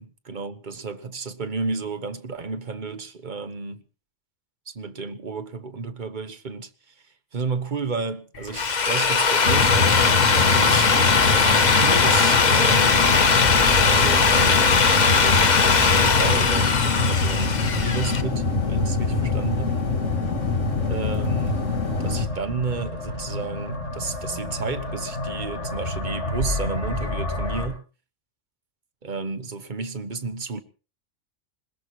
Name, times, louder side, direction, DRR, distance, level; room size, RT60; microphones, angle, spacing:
voice 1, 0.0-3.8 4.7-6.7 7.3-10.9 11.5-13.2 13.8-14.9 15.1-19.8 20.9-21.6 22.0-27.8 29.0-30.6, right 4 dB, 40° right, 1.3 m, -32 dB
Drill, 8.4-18.2, left 5 dB, 40° left, 1.0 m, -19 dB
sound 1, 9.4-22.3, left 4 dB, 85° left, 2.2 m, -25 dB
sound 2, 12.8-27.7, left 2 dB, 60° left, 5.9 m, -31 dB
21.0 x 20.5 x 3.1 m
omnidirectional pair, 1.3 m